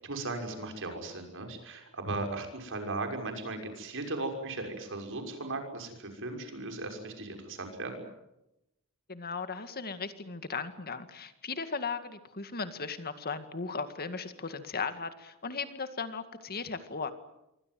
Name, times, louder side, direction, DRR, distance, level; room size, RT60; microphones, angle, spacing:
voice 1, 0.0-8.0, right 2 dB, 60° right, 4 dB, 6.1 m, -37 dB
voice 2, 9.1-17.1, left 5 dB, 45° left, 10 dB, 2.0 m, -37 dB
27.0 x 24.0 x 7.7 m, 0.89 s
head